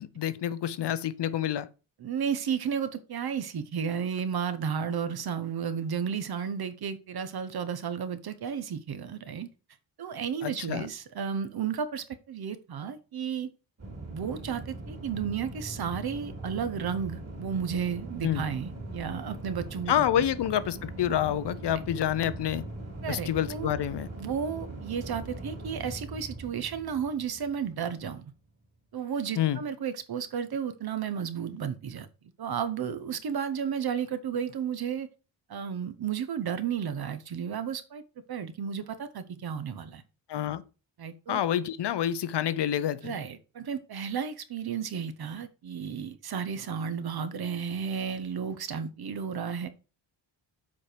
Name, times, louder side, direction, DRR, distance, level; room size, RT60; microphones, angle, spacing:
voice 1, 0.0-1.7 10.4-10.9 18.2-18.5 19.9-22.6 23.1-24.1 29.4-29.6 40.3-40.6 41.3-43.2, left 10 dB, 60° left, 0.6 m, -28 dB
voice 2, 2.0-9.5 10.0-13.5 14.1-20.2 21.7-21.8 23.0-23.7 24.2-28.3 28.9-32.1 32.4-35.1 35.5-38.0 38.3-40.0 41.0-41.4 43.0-49.7, right 7 dB, 50° right, 0.8 m, -33 dB
sound 1, 13.8-28.2, right 2 dB, 35° right, 2.6 m, -41 dB
7.4 x 4.5 x 4.9 m
wide cardioid pair, 170°, 47 cm